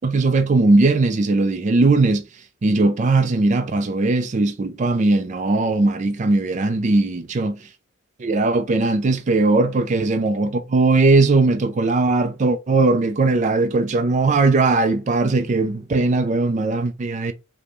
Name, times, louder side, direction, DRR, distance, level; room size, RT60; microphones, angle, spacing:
voice 1, 0.0-2.2 2.6-7.5 8.2-17.3, right 3 dB, 35° right, 0.4 m, -19 dB
5.0 x 2.1 x 3.0 m
head